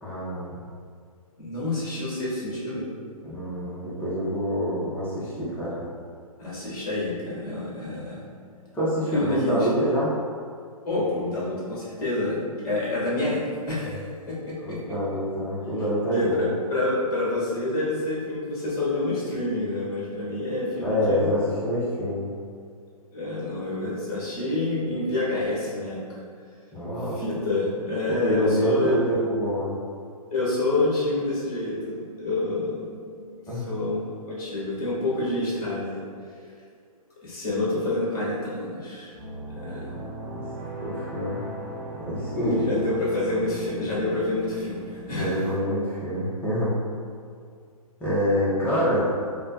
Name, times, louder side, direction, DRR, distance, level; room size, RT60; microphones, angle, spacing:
voice 1, 0.0-0.6 3.2-5.8 8.7-10.2 14.6-16.5 20.8-22.3 26.7-27.2 28.1-29.8 33.5-33.7 40.3-40.4 40.8-41.5 42.0-42.7 45.1-46.8 48.0-49.1, equal, 10° left, -8 dB, 0.8 m, -26 dB
voice 2, 1.4-2.9 6.4-8.2 9.1-9.8 10.8-15.0 15.7-15.8 16.1-21.4 23.1-26.0 27.1-28.9 30.3-32.8 33.2-36.0 37.2-39.1 39.5-39.9 42.3-45.5, left 2 dB, 35° left, -7 dB, 1.3 m, -28 dB
sound 1, 39.1-45.0, right 1 dB, 45° right, 1.1 m, -37 dB
5.0 x 2.2 x 2.7 m, 2.1 s
figure-of-eight pair, 120°, 19 cm